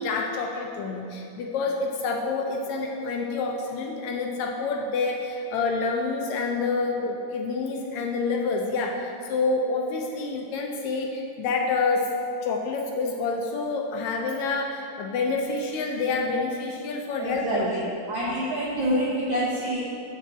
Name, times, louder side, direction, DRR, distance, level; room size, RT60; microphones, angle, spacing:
voice 1, 0.0-12.1 12.4-17.7, left 3 dB, 75° left, 1 dB, 1.7 m, -28 dB
voice 2, 17.2-17.8 18.1-19.8, right 1 dB, 75° right, -6 dB, 1.1 m, -26 dB
6.8 x 5.5 x 7.3 m, 2.6 s
omnidirectional pair, 3.8 m